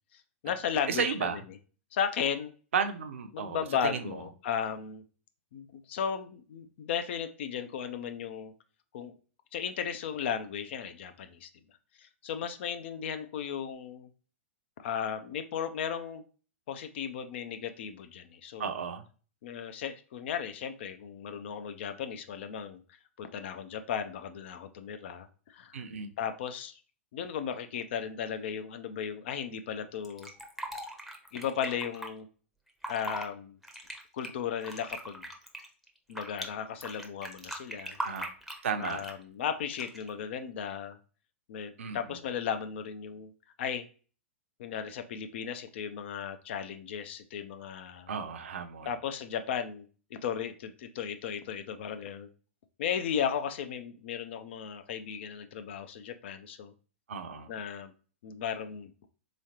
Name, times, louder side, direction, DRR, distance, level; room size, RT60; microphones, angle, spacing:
voice 1, 0.1-1.4 1.9-2.5 3.3-5.0 5.5-8.5 8.9-9.1 9.5-11.5 12.0-14.1 14.8-16.2 16.7-18.7 19.4-22.8 23.2-25.8 26.2-26.8 27.1-30.3 31.3-32.3 32.9-33.6 34.1-35.3 36.1-38.0 38.8-41.0 41.5-43.3 43.6-43.9 44.6-48.1 48.9-49.9 50.1-52.3 52.8-56.7 57.5-57.9 58.2-58.9, left 8 dB, 60° left, 9 dB, 0.5 m, -35 dB
voice 2, 0.9-1.4 2.7-4.2 18.6-19.0 25.7-26.1 37.8-38.3 38.6-39.0 41.8-42.2 48.1-48.9 57.1-57.5, right 6 dB, 75° right, 8 dB, 0.6 m, -34 dB
Fill (with liquid), 30.0-32.1 32.7-33.3 33.6-36.5 36.8-39.2 39.7-40.1, right 1 dB, ahead, 0.7 m, -40 dB
3.8 x 3.1 x 2.7 m, 0.39 s
hypercardioid pair, 110°, 7 cm